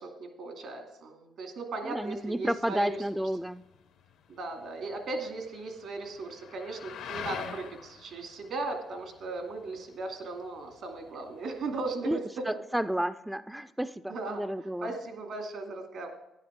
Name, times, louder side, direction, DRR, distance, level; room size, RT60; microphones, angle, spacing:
voice 1, 0.0-3.0 4.3-12.2 12.5-12.6 14.1-16.1, right 3 dB, 75° right, 3 dB, 2.4 m, -37 dB
voice 2, 1.8-3.6 12.0-12.2 12.5-14.9, right 1 dB, 5° right, 12 dB, 0.3 m, -31 dB
sound 1, 2.0-11.9, left 7 dB, 85° left, 0.9 m, -46 dB
10.5 x 10.5 x 3.7 m, 0.91 s
cardioid pair, 90°, 0 cm